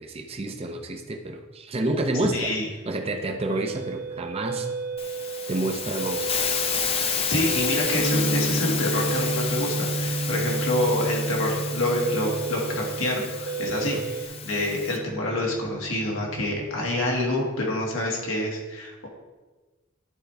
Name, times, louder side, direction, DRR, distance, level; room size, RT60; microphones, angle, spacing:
voice 1, 0.0-2.5 2.9-4.7 5.5-6.3 10.3-10.7 13.8-14.0, right 2 dB, 30° right, 4 dB, 0.6 m, -29 dB
voice 2, 2.3-2.7 7.3-14.0 14.4-19.1, left 1 dB, 85° left, -1 dB, 1.7 m, -27 dB
sound 1, 3.5-14.3, right 5 dB, 75° right, 1.8 m, -34 dB
Hiss, 5.0-15.0, left 7 dB, 30° left, 0.5 m, -31 dB
sound 2, 8.0-17.8, right 2 dB, 65° left, 1.3 m, -32 dB
11.0 x 4.5 x 3.4 m, 1.3 s
head